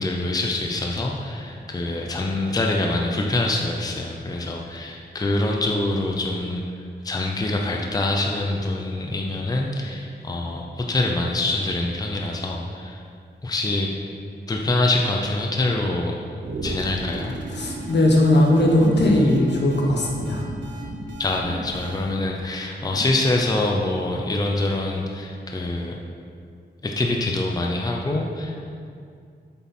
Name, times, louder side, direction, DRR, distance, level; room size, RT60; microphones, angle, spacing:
voice 1, 0.0-6.6 7.0-13.0 13.4-13.9 14.5-16.2 16.6-17.3 21.2-26.0 26.8-28.6, left 2 dB, 20° left, 0 dB, 0.6 m, -25 dB
sound 1, 16.4-22.2, right 2 dB, 90° right, 1.1 m, -34 dB
voice 2, 17.5-20.4, left 1 dB, 70° left, 0 dB, 1.3 m, -18 dB
8.1 x 7.1 x 4.4 m, 2.3 s
wide cardioid pair, 140°, 19 cm